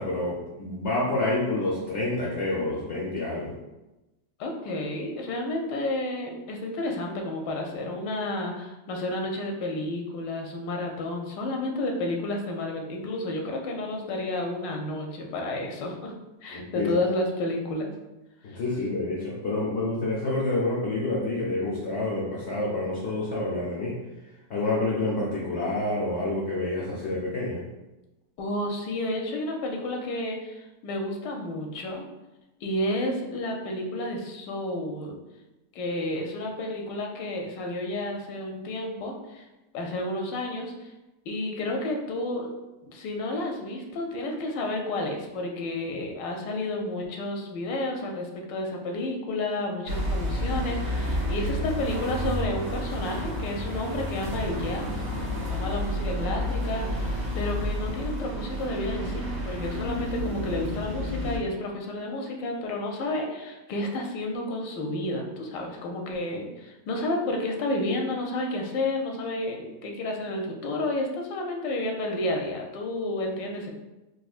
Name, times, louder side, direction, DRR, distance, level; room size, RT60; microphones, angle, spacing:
voice 1, 0.0-3.5 16.5-16.9 18.4-24.0 24.5-27.6, left 2 dB, 70° left, -5 dB, 0.6 m, -28 dB
voice 2, 4.4-16.1 16.4-17.9 18.5-18.6 28.4-32.0 32.6-35.2 35.7-39.4 39.7-40.9 41.3-42.5 42.8-54.9 55.5-73.7, left 1 dB, 85° left, 1 dB, 1.2 m, -31 dB
sound 1, 49.9-61.4, equal, 80° right, 1.6 m, -30 dB
4.1 x 2.3 x 2.4 m, 1.0 s
omnidirectional pair, 1.9 m